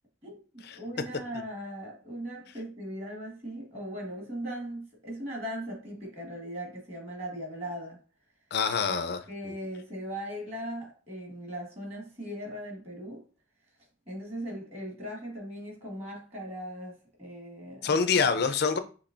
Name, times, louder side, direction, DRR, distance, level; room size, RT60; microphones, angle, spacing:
voice 1, 0.2-8.0 9.3-13.2 14.1-18.0, equal, 30° right, 1.4 m, -39 dB
voice 2, 8.5-9.2 9.5-9.6 17.8-18.8, left 5 dB, 50° left, 0.5 m, -26 dB
6.0 x 3.1 x 2.5 m
head